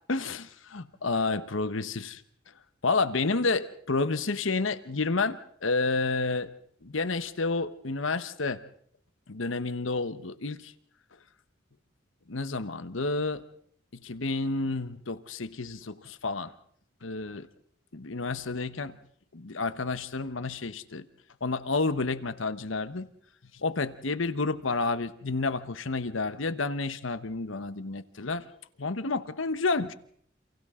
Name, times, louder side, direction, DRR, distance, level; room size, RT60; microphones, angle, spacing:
voice 1, 0.1-2.2 2.8-6.5 6.8-8.6 9.3-10.7 12.3-13.4 13.9-16.5 17.0-17.5 17.9-19.0 19.3-21.0 21.4-23.1 23.5-28.5 28.8-29.9, left 3 dB, 80° left, 13 dB, 1.1 m, -30 dB
29.0 x 28.0 x 3.8 m, 0.63 s
head